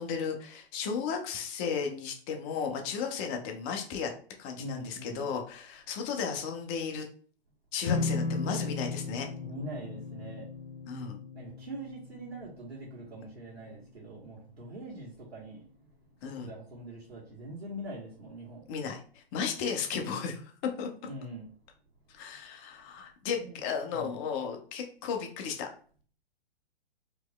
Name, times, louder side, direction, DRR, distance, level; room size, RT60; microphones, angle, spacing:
voice 1, 0.0-4.1 4.4-7.1 7.7-9.3 10.9-11.2 16.2-16.5 18.7-20.5 20.8-20.9 22.1-25.7, left 6 dB, 30° left, 3 dB, 0.7 m, -34 dB
voice 2, 4.5-5.2 9.4-10.5 11.3-15.9 16.2-18.7 21.1-21.5 23.3-23.6 23.9-24.1, right 1 dB, 85° right, -6 dB, 1.5 m, -43 dB
sound 1, 7.8-14.3, left 3 dB, 80° left, 0.6 m, -36 dB
4.5 x 3.0 x 2.3 m, 0.43 s
figure-of-eight pair, 115°, 31 cm